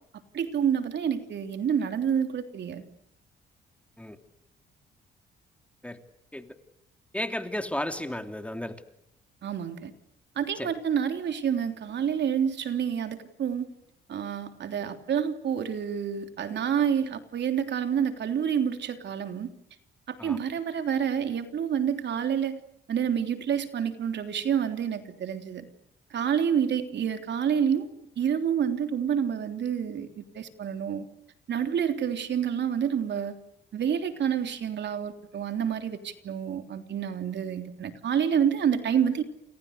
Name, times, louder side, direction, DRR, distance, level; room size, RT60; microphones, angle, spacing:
voice 1, 0.3-2.8 9.4-9.9 10.3-13.7 14.1-19.5 20.1-22.6 22.9-25.7 26.1-27.9 28.2-31.0 31.5-33.3 33.7-39.2, right 8 dB, 60° right, 7 dB, 3.4 m, -28 dB
voice 2, 7.1-8.8 10.6-10.7 20.2-20.4, left 1 dB, 5° left, 7 dB, 2.9 m, -33 dB
29.0 x 28.5 x 6.7 m, 0.78 s
cardioid pair, 90°, 20 cm